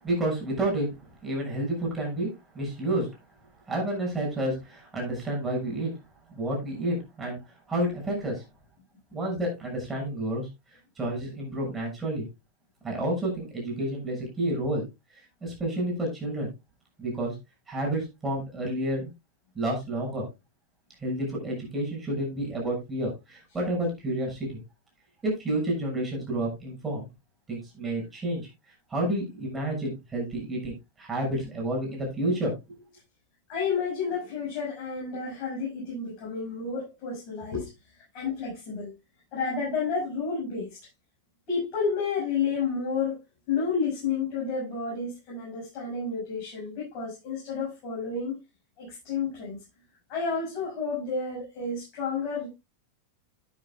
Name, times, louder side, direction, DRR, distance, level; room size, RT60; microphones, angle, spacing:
voice 1, 0.0-3.1 3.7-5.9 6.3-8.4 9.1-12.2 12.8-14.8 15.1-16.5 17.0-17.3 17.7-19.1 19.5-20.2 21.0-24.6 25.2-27.1 27.5-28.5 28.9-32.8, right 1 dB, 15° right, 6.7 m, -30 dB
voice 2, 33.5-37.7 38.0-38.9 39.3-40.8 41.5-43.2 43.5-48.4 48.8-49.6 50.1-52.5, left 5 dB, 40° left, 7.0 m, -30 dB
12.5 x 9.7 x 2.4 m
figure-of-eight pair, 90°, 0 cm